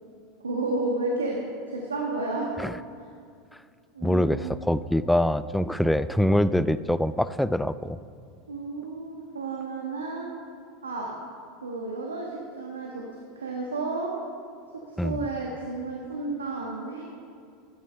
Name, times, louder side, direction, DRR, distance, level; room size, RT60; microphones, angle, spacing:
voice 1, 0.4-1.4 1.7-2.5 3.0-3.1 3.9-4.6 8.5-10.3 10.8-11.1 11.6-13.0 13.3-14.1 14.7-17.0, right 3 dB, 85° right, -1 dB, 1.3 m, -32 dB
voice 2, 4.0-8.0 15.0-15.2, left 1 dB, 5° left, 15 dB, 0.4 m, -24 dB
12.5 x 9.6 x 5.5 m, 2.3 s
figure-of-eight pair, 80°, 0 cm